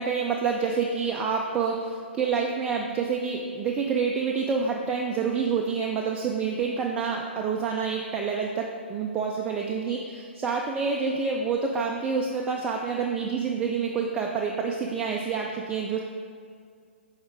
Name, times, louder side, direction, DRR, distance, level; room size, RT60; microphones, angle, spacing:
voice 1, 0.0-16.0, right 5 dB, 15° right, 0 dB, 0.3 m, -28 dB
7.7 x 4.0 x 3.7 m, 2.2 s
figure-of-eight pair, 125°, 7 cm